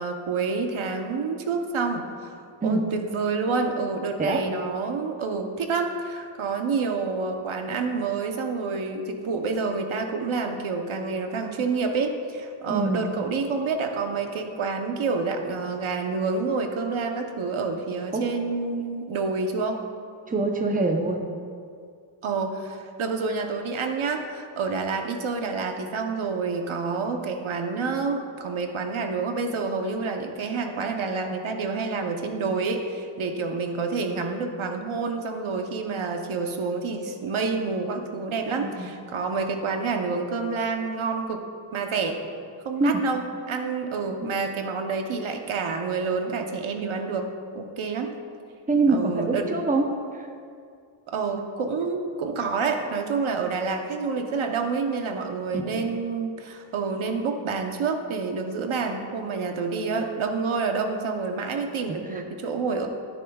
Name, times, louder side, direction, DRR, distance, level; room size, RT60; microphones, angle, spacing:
voice 1, 0.0-2.3 2.6-19.8 22.2-41.4 41.7-42.2 42.6-47.3 47.5-48.1 48.9-49.5 51.1-62.9, right 4 dB, 75° right, 4 dB, 1.0 m, -28 dB
voice 2, 12.7-13.1 18.1-18.2 20.3-21.2 38.5-38.9 42.8-43.0 44.2-44.3 48.7-49.9 50.1-50.3 55.5-55.9 62.1-62.2, right 3 dB, 15° right, 3 dB, 0.7 m, -25 dB
14.0 x 9.1 x 2.3 m, 2.3 s
wide cardioid pair, 130°, 49 cm